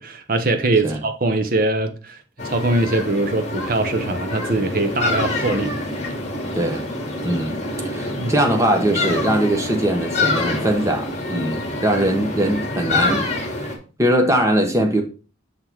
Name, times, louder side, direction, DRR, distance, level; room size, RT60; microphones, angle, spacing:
voice 1, 0.0-2.2 2.4-5.8 8.2-8.3, right 2 dB, 45° right, 0.9 m, -22 dB
sound 1, 2.4-13.8, left 2 dB, 35° left, 1.5 m, -26 dB
voice 2, 6.5-6.9 7.2-7.6 7.8-13.3 14.0-15.0, right 1 dB, 15° right, 1.1 m, -21 dB
6.7 x 3.8 x 4.5 m
head